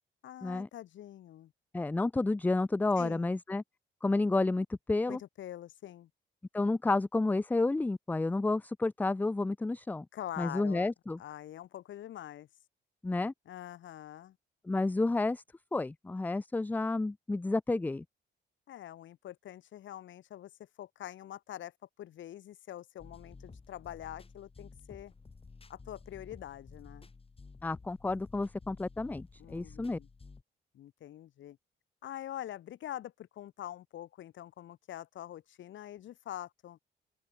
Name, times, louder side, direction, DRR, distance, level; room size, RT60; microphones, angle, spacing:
voice 1, 0.2-1.5 3.0-3.3 5.1-6.1 10.1-10.9 11.2-12.5 13.5-14.4 18.7-25.1 25.7-27.1 29.4-30.1 30.7-31.6 32.0-36.8, left 12 dB, 70° left, 2.1 m, -45 dB
voice 2, 1.7-3.6 4.0-5.2 6.5-10.1 10.4-11.2 13.0-13.3 14.7-15.4 15.7-18.0 27.6-30.0, left 2 dB, 10° left, 0.3 m, -30 dB
sound 1, 23.0-30.4, left 4 dB, 30° left, 7.1 m, -53 dB
open air
cardioid pair, 90°, 20 cm